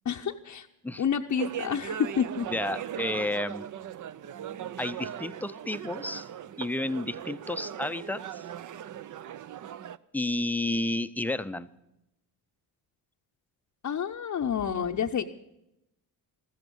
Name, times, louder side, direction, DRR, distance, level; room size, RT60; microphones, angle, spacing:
voice 1, 0.1-0.7 1.0-2.5 13.8-15.2, left 7 dB, 40° left, 1 dB, 0.7 m, -29 dB
sound 1, 1.4-10.0, right 9 dB, 45° right, 0.6 m, -39 dB
voice 2, 2.5-3.7 4.8-6.3 6.6-8.4 10.1-11.7, left 2 dB, 5° left, 12 dB, 0.5 m, -31 dB
14.5 x 14.0 x 5.4 m, 0.87 s
supercardioid pair, 70°, 44 cm